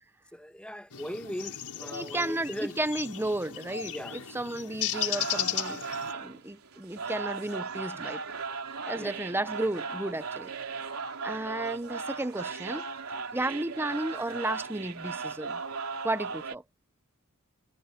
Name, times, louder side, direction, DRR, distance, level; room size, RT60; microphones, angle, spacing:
voice 1, 0.3-2.8 3.9-4.3 9.0-9.1, equal, 5° left, 2.1 m, -39 dB
sound 1, 0.9-6.1, left 11 dB, 90° left, 5.3 m, -35 dB
voice 2, 1.8-5.8 6.1-8.2 8.9-10.5 11.2-12.9 13.3-15.6 16.0-16.6, right 1 dB, 10° right, 0.8 m, -33 dB
sound 2, 4.9-16.6, right 4 dB, 70° right, 3.6 m, -37 dB
head